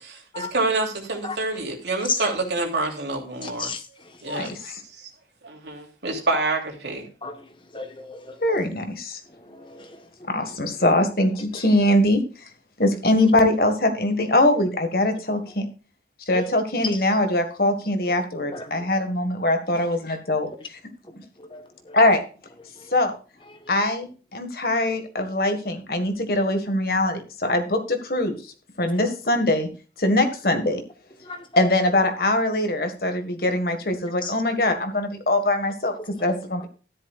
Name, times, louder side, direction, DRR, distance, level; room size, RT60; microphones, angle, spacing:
voice 1, 0.0-3.7 4.2-5.1 5.4-7.1, right 2 dB, 75° right, 3.1 m, -27 dB
voice 2, 3.4-3.8 7.2-7.3 7.7-8.3 9.5-9.9 16.3-16.4 18.5-18.6 21.5-22.0 28.8-29.1 31.3-31.4 34.2-34.3, left 4 dB, 30° left, 1.2 m, -32 dB
voice 3, 4.2-4.8 8.4-9.2 10.3-12.2 12.8-15.7 16.3-20.5 21.9-22.2 22.9-23.1 23.7-28.4 28.8-29.7 30.0-30.8 31.6-36.7, left 1 dB, 55° left, 1.7 m, -22 dB
13.0 x 10.5 x 2.4 m
head